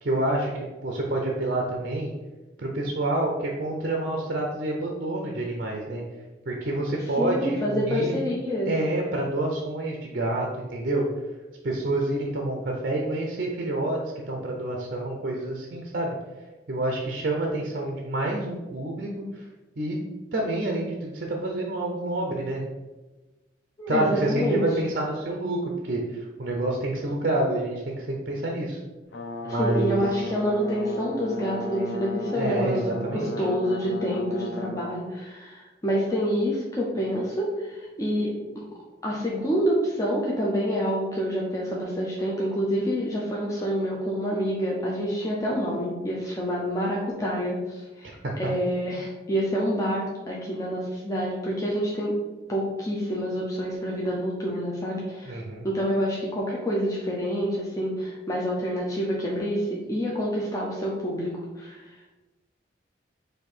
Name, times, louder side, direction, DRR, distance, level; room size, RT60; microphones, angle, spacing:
voice 1, 0.0-2.1 2.6-6.0 6.5-8.2 8.7-11.1 11.6-14.0 14.3-16.1 16.7-19.4 19.8-20.0 20.3-22.6 23.9-28.8 29.4-30.1 32.3-33.3 48.0-48.3 55.3-55.7, right 2 dB, 50° right, 0 dB, 0.6 m, -28 dB
voice 2, 7.2-8.7 23.8-24.6 29.4-38.6 39.0-48.1 48.4-52.1 52.5-55.4 55.6-61.9, equal, 20° left, -4 dB, 0.6 m, -27 dB
Brass instrument, 29.1-34.9, left 2 dB, 80° left, 0.5 m, -36 dB
4.3 x 2.6 x 4.3 m, 1.1 s
head